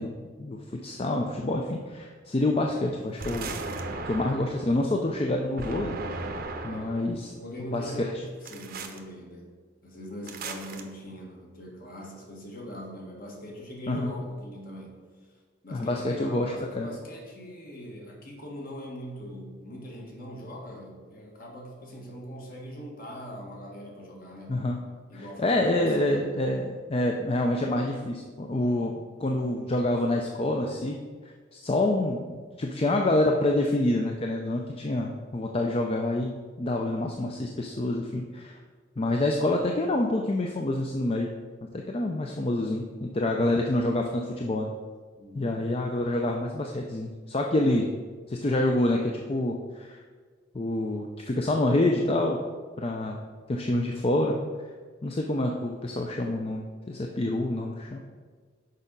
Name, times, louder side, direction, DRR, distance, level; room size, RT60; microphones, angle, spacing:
voice 1, 0.0-3.5 4.1-6.0 6.6-7.3 7.7-8.1 13.9-14.1 15.7-16.9 24.5-24.8 25.1-28.9 29.2-31.0 31.5-38.5 39.0-41.3 41.7-44.7 45.4-47.9 48.3-50.0 50.5-52.4 52.8-53.2 53.5-54.4 55.0-58.0, left 1 dB, 30° left, 1 dB, 0.5 m, -27 dB
sound 1, 3.2-4.7 5.6-7.0 8.5-9.0 10.3-10.8, right 3 dB, 55° right, 0.7 m, -36 dB
voice 2, 6.6-8.2 8.4-9.5 9.8-15.0 15.6-24.7 25.1-26.2 45.2-45.6, equal, 50° left, -1 dB, 1.6 m, -41 dB
6.6 x 4.9 x 5.3 m, 1.6 s
head